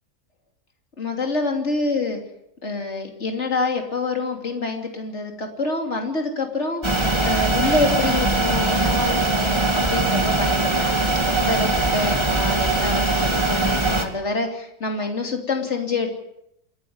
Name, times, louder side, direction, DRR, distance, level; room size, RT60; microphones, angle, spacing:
voice 1, 1.0-2.2 2.6-16.1, left 3 dB, 40° left, 3 dB, 3.4 m, -26 dB
sound 1, 6.8-14.1, right 2 dB, 15° right, 2.1 m, -21 dB
29.0 x 11.0 x 9.7 m, 0.78 s
omnidirectional pair, 1.7 m